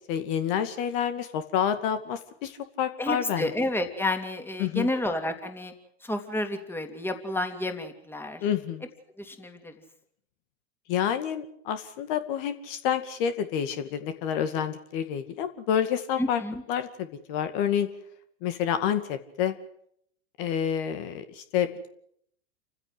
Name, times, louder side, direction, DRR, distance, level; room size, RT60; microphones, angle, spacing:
voice 1, 0.1-3.5 4.6-4.9 8.4-8.8 10.9-16.4 16.7-17.9 18.4-19.5 20.4-21.9, left 9 dB, 50° left, 9 dB, 2.3 m, -28 dB
voice 2, 3.0-5.7 6.0-8.4 9.2-9.7 16.2-16.6, left 1 dB, 5° left, 6 dB, 3.0 m, -30 dB
28.5 x 15.5 x 7.9 m, 0.69 s
hypercardioid pair, 110°, 34 cm